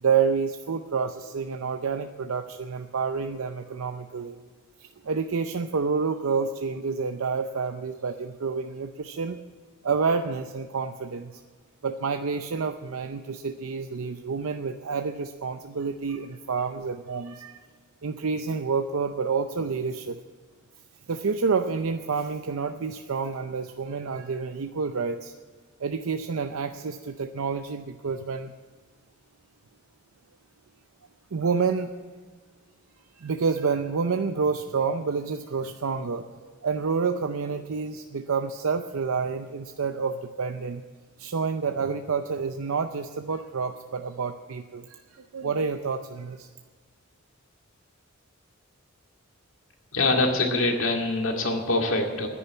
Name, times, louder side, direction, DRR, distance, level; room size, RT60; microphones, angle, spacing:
voice 1, 0.0-4.4 4.8-9.4 9.8-11.4 11.8-17.7 18.0-20.2 21.1-25.3 25.8-28.5 31.3-31.9 33.2-40.8 41.2-46.5, right 5 dB, 85° right, 7 dB, 0.6 m, -29 dB
voice 2, 49.9-52.3, left 2 dB, 65° left, 2 dB, 2.2 m, -24 dB
10.0 x 10.0 x 9.5 m, 1.5 s
head